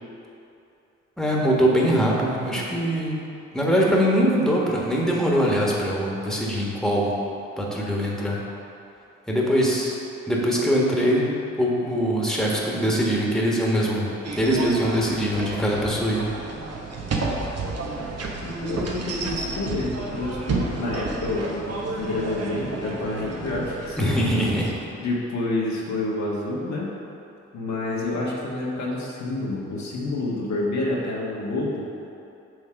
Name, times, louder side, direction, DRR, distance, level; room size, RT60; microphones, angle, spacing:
voice 1, 1.2-3.2 3.5-7.1 7.6-8.4 9.3-10.0 10.3-11.3 11.6-14.1 14.4-16.3 24.0-24.7, equal, ahead, -4 dB, 1.5 m, -22 dB
sound 1, 14.2-24.7, right 3 dB, 55° right, 1.0 m, -31 dB
voice 2, 18.4-24.1 25.0-26.9 27.5-31.9, left 2 dB, 65° left, -5 dB, 1.4 m, -28 dB
6.4 x 3.5 x 5.8 m, 2.7 s
supercardioid pair, 50°, 30 cm